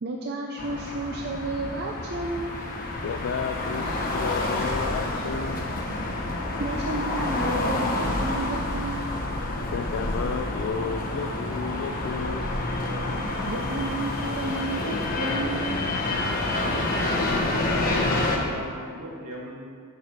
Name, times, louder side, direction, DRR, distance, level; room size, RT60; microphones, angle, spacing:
voice 1, 0.0-2.6 6.6-9.0 13.5-15.8, right 2 dB, 45° right, 0 dB, 0.5 m, -32 dB
sound 1, 0.6-18.4, left 2 dB, 40° left, 1.0 m, -28 dB
voice 2, 3.0-5.6 9.7-12.5, left 5 dB, 60° left, 6 dB, 0.3 m, -32 dB
voice 3, 17.8-19.7, left 1 dB, 80° right, -5 dB, 1.9 m, -37 dB
8.1 x 4.8 x 5.8 m, 2.1 s
head